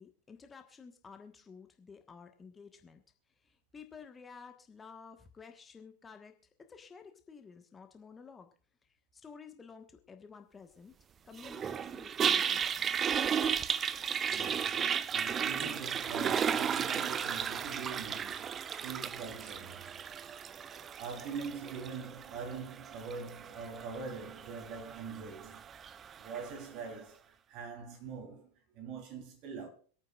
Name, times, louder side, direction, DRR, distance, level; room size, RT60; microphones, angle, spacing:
voice 1, 0.0-3.0 3.3-8.5 8.8-11.0 11.2-12.9, left 5 dB, 15° left, 1.4 m, -53 dB
Toilet flush, 11.4-26.6, right 7 dB, 25° right, 0.5 m, -34 dB
voice 2, 14.3-25.9 26.2-27.2 27.5-29.7, right 5 dB, 40° right, 3.5 m, -44 dB
26.5 x 9.0 x 2.5 m
figure-of-eight pair, 90°, 0 cm